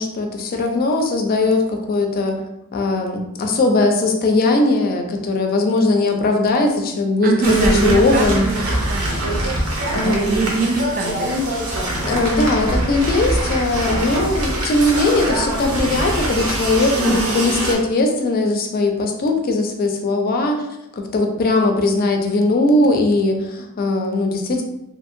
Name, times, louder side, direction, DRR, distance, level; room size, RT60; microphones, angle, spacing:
voice 1, 0.0-2.4 2.7-8.5 9.9-10.4 12.0-20.6 20.9-24.6, left 2 dB, 40° left, 3 dB, 0.4 m, -19 dB
voice 2, 7.2-9.4 9.8-11.3 17.0-17.4, right 4 dB, 40° right, 4 dB, 0.3 m, -23 dB
sound 1, 7.4-17.7, right 1 dB, 65° right, 0.8 m, -23 dB
2.7 x 2.7 x 2.5 m, 0.87 s
head